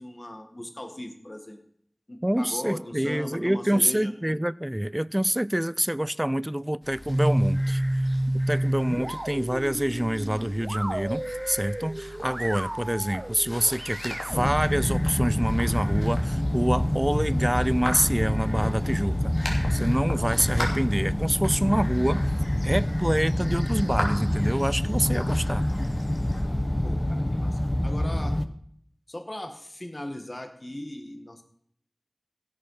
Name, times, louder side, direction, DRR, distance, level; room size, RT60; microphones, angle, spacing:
voice 1, 0.0-1.6 2.1-4.1 26.8-28.4 29.1-31.4, left 1 dB, 45° left, 1.4 m, -38 dB
voice 2, 2.2-8.0 8.5-22.3 22.6-25.7, right 1 dB, 20° right, 0.4 m, -26 dB
sound 1, 6.8-26.4, left 1 dB, 80° left, 2.7 m, -40 dB
sound 2, 7.1-15.7, right 1 dB, 35° right, 1.1 m, -30 dB
sound 3, 14.3-28.5, left 1 dB, 25° left, 0.8 m, -26 dB
16.5 x 6.4 x 5.5 m
wide cardioid pair, 45°, 0 cm